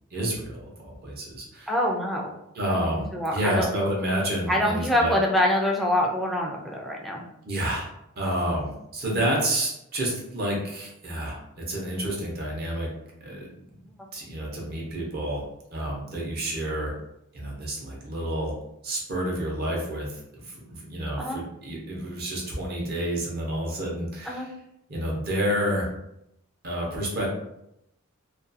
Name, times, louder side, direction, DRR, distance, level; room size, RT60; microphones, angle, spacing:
voice 1, 0.1-1.7 2.5-5.1 7.5-7.9 8.2-12.9 13.2-13.5 14.1-15.4 15.7-16.9 17.3-18.5 18.8-24.5 24.9-25.9 26.6-27.3, right 1 dB, 45° right, -3 dB, 0.7 m, -29 dB
voice 2, 1.7-2.3 2.9-3.7 4.5-7.2 21.2-21.4 24.3-24.5, left 1 dB, ahead, -2 dB, 0.4 m, -25 dB
2.4 x 2.3 x 2.6 m, 0.81 s
head